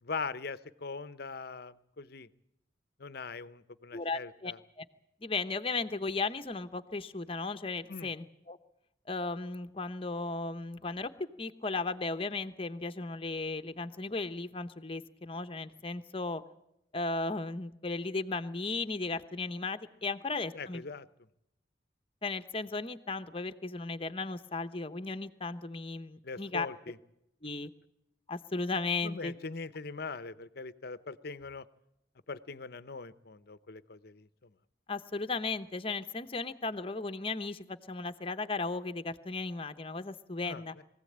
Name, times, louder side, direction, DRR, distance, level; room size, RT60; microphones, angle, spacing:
voice 1, 0.0-2.3 3.0-4.6 7.9-8.1 20.5-21.1 26.2-27.0 29.0-31.6 32.3-34.3 40.4-40.8, left 4 dB, 55° left, 15 dB, 0.8 m, -41 dB
voice 2, 3.9-4.5 4.8-4.9 5.2-8.6 9.1-11.1 11.4-16.4 16.9-20.8 22.2-26.7 27.4-27.7 28.3-29.3 34.9-40.7, left 3 dB, 30° left, 10 dB, 0.9 m, -35 dB
23.0 x 16.0 x 8.7 m, 0.83 s
head